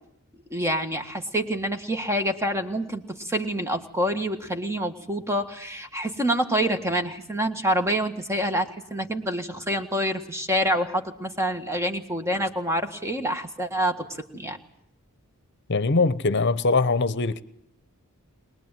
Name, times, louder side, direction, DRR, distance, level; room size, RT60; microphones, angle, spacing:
voice 1, 0.5-14.6, equal, 10° right, 1.7 m, -27 dB
voice 2, 15.7-17.4, left 3 dB, 50° left, 1.0 m, -22 dB
22.5 x 20.5 x 9.1 m
head